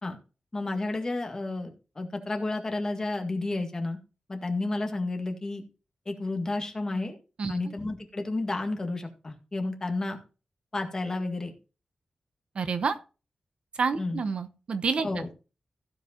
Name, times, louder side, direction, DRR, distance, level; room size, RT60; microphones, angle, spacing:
voice 1, 0.5-4.0 4.3-5.6 6.1-7.2 7.5-10.2 10.7-11.5 14.0-14.2 15.0-15.3, left 2 dB, 30° left, 4 dB, 1.9 m, -31 dB
voice 2, 12.5-13.0 13.8-15.3, right 5 dB, 60° right, 11 dB, 0.9 m, -28 dB
15.5 x 5.3 x 4.4 m, 0.33 s
wide cardioid pair, 145°, 2 cm